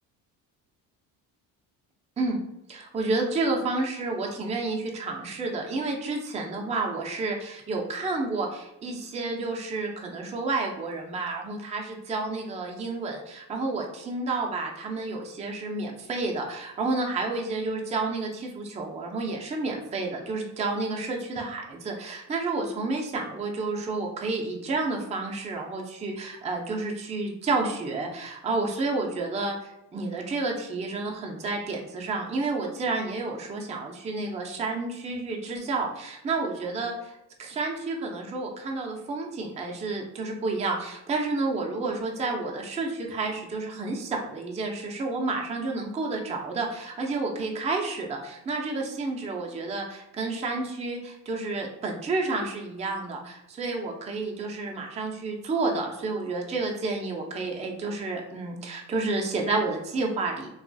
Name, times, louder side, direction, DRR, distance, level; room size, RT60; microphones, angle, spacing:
voice 1, 2.7-60.5, right 3 dB, 15° right, 0 dB, 0.4 m, -30 dB
2.8 x 2.3 x 2.6 m, 0.84 s
supercardioid pair, 70°, 46 cm